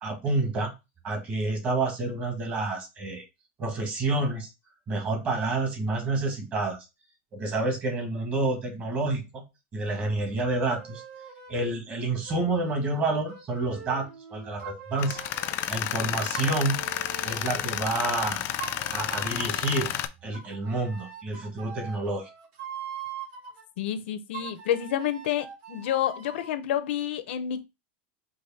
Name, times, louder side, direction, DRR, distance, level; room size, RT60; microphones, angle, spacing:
voice 1, 0.0-0.7 1.0-3.2 3.6-4.5 4.9-6.8 7.3-9.5 9.7-11.0 11.5-15.2 15.7-16.9 17.2-18.4 18.9-19.9 20.2-22.3, right 2 dB, 25° right, 1.6 m, -29 dB
sound 1, 10.7-11.7 12.2-15.7 16.3-18.2 18.6-19.7 20.3-23.6 24.3-26.5, right 7 dB, 45° right, 1.7 m, -43 dB
Tools, 15.0-20.1, left 13 dB, 40° left, 0.4 m, -31 dB
voice 2, 23.8-27.6, left 10 dB, 75° left, 0.7 m, -29 dB
4.7 x 2.7 x 4.1 m
supercardioid pair, 155°, 6 cm